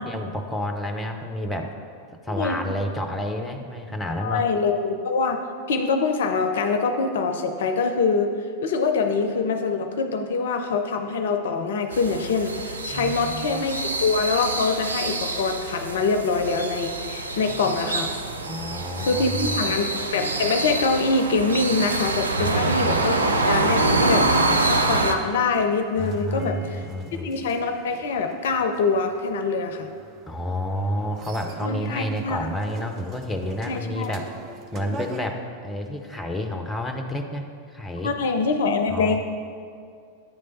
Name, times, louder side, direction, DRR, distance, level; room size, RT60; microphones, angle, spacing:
voice 1, 0.0-1.7 2.2-4.4 12.9-13.6 17.4-17.8 18.5-19.8 22.4-22.9 26.0-27.3 30.3-34.3 34.7-38.1 38.9-39.2, equal, 5° left, 4 dB, 0.6 m, -30 dB
voice 2, 2.3-2.6 4.2-5.4 5.7-8.3 8.6-18.1 19.0-23.2 23.5-26.8 27.1-29.9 31.6-32.4 33.7-34.1 38.0-39.2, left 4 dB, 60° left, 7 dB, 0.4 m, -24 dB
sound 1, 11.9-25.1, right 2 dB, 80° right, 0.5 m, -25 dB
sound 2, 25.2-35.2, right 3 dB, 35° right, 0.6 m, -44 dB
8.9 x 3.2 x 5.3 m, 2.2 s
figure-of-eight pair, 90°, 0 cm